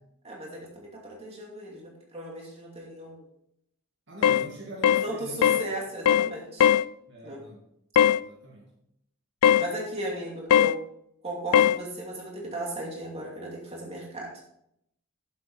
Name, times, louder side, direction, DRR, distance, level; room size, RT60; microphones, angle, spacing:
voice 1, 0.2-3.2 5.0-6.7 7.2-7.4 9.6-10.8 11.2-14.4, right 1 dB, 25° right, -2 dB, 2.6 m, -36 dB
voice 2, 4.1-5.5 7.1-7.6 8.2-8.7, equal, 55° right, -2 dB, 2.1 m, -42 dB
sound 1, 4.2-4.5 4.8-5.1 5.4-5.7 6.1-6.3 6.6-6.9 8.0-8.2 9.4-9.7 10.5-10.8 11.5-11.8, left 9 dB, 85° left, 0.3 m, -19 dB
11.5 x 7.5 x 4.2 m, 0.75 s
head